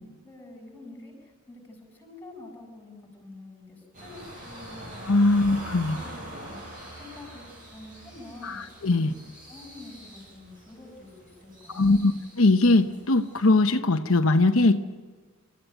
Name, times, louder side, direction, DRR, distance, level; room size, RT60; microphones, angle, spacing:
voice 1, 0.0-2.9 3.2-5.5 5.9-9.1 9.5-12.1, left 2 dB, 10° left, 2 dB, 7.8 m, -47 dB
sound 1, 3.9-13.5, right 1 dB, 40° right, 8.0 m, -44 dB
voice 2, 5.1-6.0 8.4-8.6 8.8-9.1 11.7-12.1 12.4-14.8, left 2 dB, 80° left, 7 dB, 1.0 m, -20 dB
28.5 x 14.5 x 9.2 m, 1.4 s
head